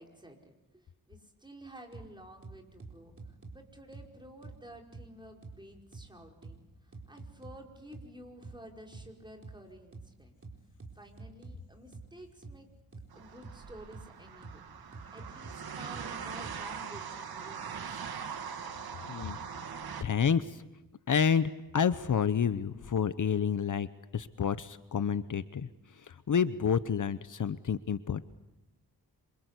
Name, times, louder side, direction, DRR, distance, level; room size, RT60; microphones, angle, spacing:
voice 1, 0.0-10.4 10.9-12.7 13.1-14.6 15.1-18.4, equal, 10° right, 1 dB, 5.1 m, -52 dB
sound 1, 1.9-2.1 2.4-3.6 3.9-4.1 4.4-4.6 4.9-5.1 5.4-5.6 5.9-6.1 6.4-6.6 6.9-7.6 7.9-8.1 8.4-8.6 8.9-9.1 9.4-9.6 9.9-10.1 10.4-11.6 11.9-12.1 12.4-12.6 12.9-13.1 13.4-13.6 13.9-14.1 14.4-14.6 14.9-15.6 15.9-16.1 16.4-16.6 16.9-17.0, right 3 dB, 35° right, 4.4 m, -46 dB
sound 2, 13.1-20.0, right 7 dB, 75° right, 2.0 m, -41 dB
voice 2, 20.0-20.6 21.1-23.9 24.1-25.7 26.1-28.2, left 7 dB, 55° left, 13 dB, 0.9 m, -29 dB
27.5 x 26.0 x 8.3 m, 0.97 s
wide cardioid pair, 105°, 37 cm